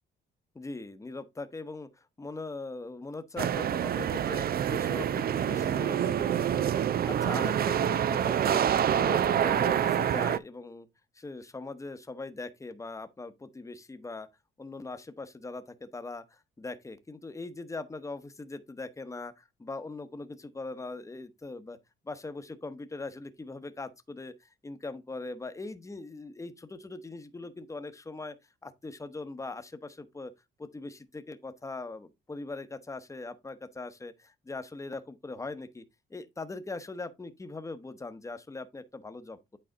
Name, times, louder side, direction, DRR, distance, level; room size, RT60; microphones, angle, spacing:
voice 1, 0.5-6.7 7.1-8.6 8.9-10.9 11.1-14.3 14.6-21.8 22.0-28.4 28.6-30.3 30.6-35.8 36.1-39.4, left 3 dB, 15° left, 1.0 m, -41 dB
sound 1, 3.4-10.4, right 9 dB, 50° right, 0.5 m, -27 dB
8.9 x 4.1 x 3.9 m
cardioid pair, 90°, 20 cm